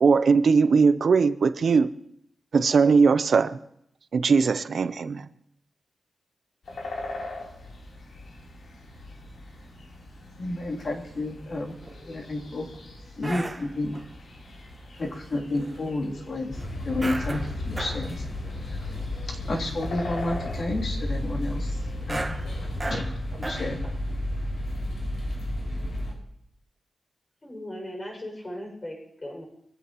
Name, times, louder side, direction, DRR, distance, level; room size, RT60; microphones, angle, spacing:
voice 1, 0.0-1.9 2.5-3.6 4.1-5.3, right 5 dB, 60° right, 0.7 m, -20 dB
sound 1, 6.6-22.8, left 2 dB, 65° left, 3.6 m, -42 dB
voice 2, 10.4-11.8 12.0-12.7 13.2-14.0 15.0-18.3 18.6-18.8 19.3-21.8 22.1-22.4 22.9-23.8, left 2 dB, 50° left, 3.1 m, -31 dB
sound 2, 10.7-10.8 11.4-12.0 12.3-12.8 13.2-14.1 15.0-15.8 16.1-16.2 17.0-18.1 18.5-18.6 19.0-19.1 19.5-19.8 20.1-20.3 22.0-24.0 24.4-24.5, right 2 dB, 20° right, 1.1 m, -36 dB
sound 3, 16.5-26.1, left 1 dB, 90° left, 5.8 m, -32 dB
voice 3, 27.4-29.4, left 1 dB, 25° left, 6.3 m, -38 dB
24.0 x 15.0 x 3.1 m
wide cardioid pair, 140°, 0 cm